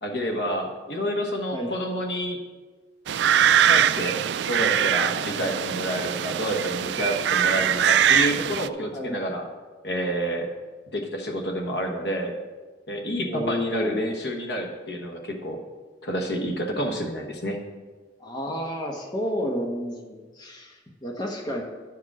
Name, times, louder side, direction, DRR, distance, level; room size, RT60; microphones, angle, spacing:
voice 1, 0.0-2.4 3.7-4.2 4.5-9.5 9.8-10.5 10.9-12.3 12.9-15.6 16.0-17.6, equal, 65° left, 2 dB, 1.2 m, -29 dB
voice 2, 1.5-1.8 8.9-9.2 13.2-14.1 18.2-21.6, left 1 dB, 25° left, 0 dB, 1.1 m, -31 dB
sound 1, 3.1-8.7, right 9 dB, 70° right, 0.3 m, -22 dB
11.5 x 4.8 x 6.0 m, 1.4 s
head